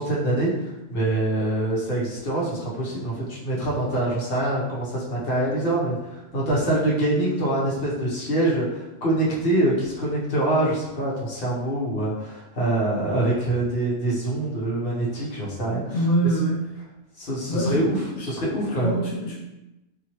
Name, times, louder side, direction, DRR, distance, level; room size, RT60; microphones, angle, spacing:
voice 1, 0.0-16.0 17.2-18.0 18.3-18.9, right 1 dB, 55° left, -6 dB, 1.1 m, -25 dB
voice 2, 15.9-16.7 17.5-17.8 18.2-18.3 18.8-19.4, right 1 dB, 80° left, -4 dB, 1.0 m, -24 dB
2.8 x 2.8 x 3.0 m, 0.97 s
omnidirectional pair, 1.2 m